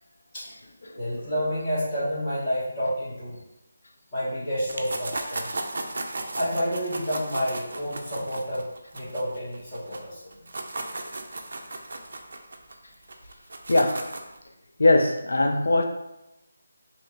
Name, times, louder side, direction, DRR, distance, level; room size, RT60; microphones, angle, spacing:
voice 1, 1.0-3.3 4.1-5.5 6.3-8.6 8.9-10.2, equal, 20° left, -11 dB, 1.1 m, -29 dB
sound 1, 4.7-10.0 10.3-14.4, right 2 dB, 55° right, 0.4 m, -35 dB
voice 2, 13.7-14.1 14.8-15.8, left 2 dB, 75° left, 4 dB, 0.3 m, -20 dB
3.1 x 2.8 x 2.5 m, 0.91 s
figure-of-eight pair, 175°, 0 cm